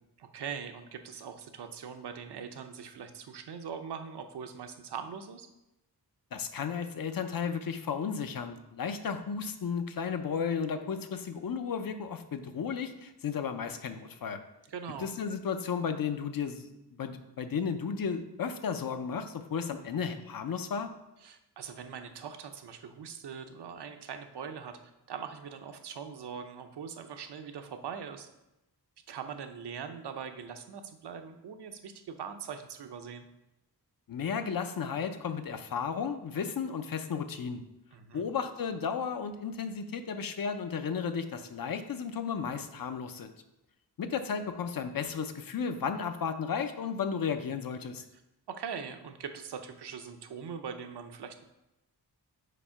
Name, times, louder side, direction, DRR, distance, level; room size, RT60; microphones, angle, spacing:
voice 1, 0.2-5.5 14.7-15.1 21.2-24.8 25.1-28.3 29.1-33.3 37.9-38.2 48.1-48.2 48.5-51.4, right 7 dB, 80° right, 7 dB, 0.7 m, -42 dB
voice 2, 6.3-14.4 15.0-20.9 34.1-37.6 38.1-43.4 44.0-48.0, left 6 dB, 60° left, 8 dB, 0.6 m, -34 dB
5.1 x 4.3 x 5.7 m, 0.91 s
wide cardioid pair, 145°, 40 cm